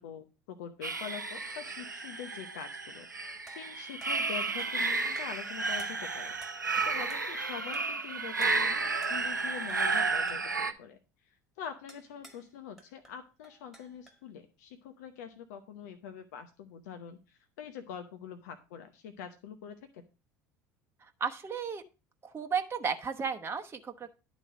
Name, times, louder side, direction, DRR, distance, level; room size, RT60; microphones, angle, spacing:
voice 1, 0.0-6.6 6.8-20.0, left 8 dB, 65° left, 8 dB, 0.8 m, -45 dB
sound 1, 0.8-10.7, right 3 dB, 90° right, 0.6 m, -32 dB
sound 2, 3.5-4.9 5.2-5.5 5.8-6.8 7.1-7.4 7.7-8.1 8.4-9.4 9.7-10.0 10.3-10.6 11.9-12.5 12.8-14.3, right 1 dB, ahead, 2.0 m, -55 dB
voice 2, 21.0-21.8 22.2-24.1, right 6 dB, 25° right, 6 dB, 0.9 m, -34 dB
11.0 x 4.1 x 6.1 m, 0.31 s
figure-of-eight pair, 65°, 10 cm